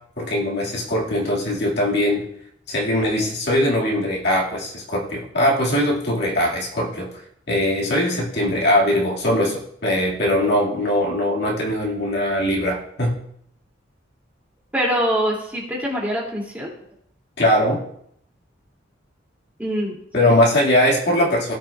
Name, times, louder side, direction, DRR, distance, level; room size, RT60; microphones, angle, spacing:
voice 1, 0.2-2.3 2.7-7.1 7.5-13.2 17.4-17.8 20.1-21.5, left 1 dB, 60° left, -3 dB, 2.1 m, -21 dB
voice 2, 14.7-16.7 19.6-20.3, equal, 10° right, -4 dB, 2.6 m, -24 dB
17.0 x 6.1 x 2.4 m, 0.70 s
head